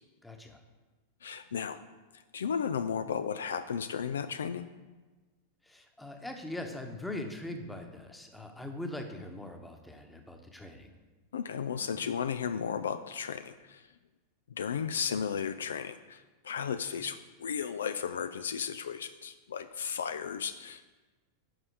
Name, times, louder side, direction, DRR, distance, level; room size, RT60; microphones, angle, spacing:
voice 1, 0.2-0.6 5.6-10.9, left 1 dB, 5° left, 5 dB, 1.1 m, -41 dB
voice 2, 1.2-1.8 2.1-4.7 11.3-13.9 14.5-20.8, left 7 dB, 65° left, 11 dB, 0.4 m, -34 dB
11.0 x 5.5 x 4.8 m, 1.3 s
figure-of-eight pair, 90°, 0 cm